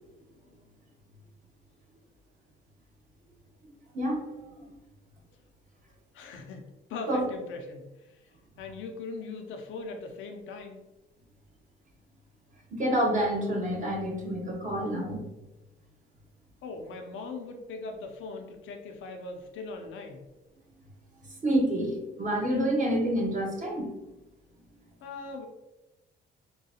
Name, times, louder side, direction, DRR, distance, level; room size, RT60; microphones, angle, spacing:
voice 1, 6.1-8.2 8.6-10.8 16.6-20.2 25.0-25.5, left 3 dB, 80° left, 4 dB, 0.6 m, -40 dB
voice 2, 12.7-15.3 21.4-23.9, right 1 dB, 40° right, -1 dB, 0.9 m, -28 dB
3.7 x 2.3 x 2.8 m, 1.0 s
cardioid pair, 90°, 20 cm